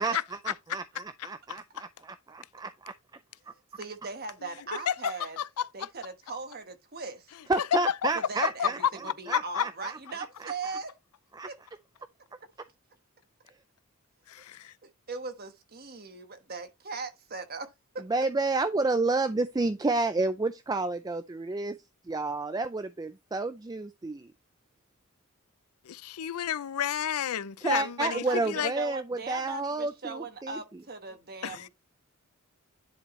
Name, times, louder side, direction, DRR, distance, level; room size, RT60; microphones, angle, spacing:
voice 1, 0.4-0.8 1.2-1.6 2.3-2.9 7.5-8.8 9.3-10.0 10.4-10.5 11.4-11.5 18.1-21.8 22.1-24.3 27.6-30.6, right 3 dB, 15° right, 0.3 m, -30 dB
voice 2, 3.8-5.4 5.7-7.3 8.1-10.9 11.5-11.6 14.8-18.1 27.8-31.7, right 4 dB, 45° right, 1.3 m, -39 dB
voice 3, 4.9-5.9 7.6-7.7 8.0-8.1 8.4-8.9 9.3-9.6 14.3-14.7 25.9-28.7 31.4-31.7, left 9 dB, 85° left, 0.5 m, -31 dB
10.0 x 4.6 x 3.1 m
head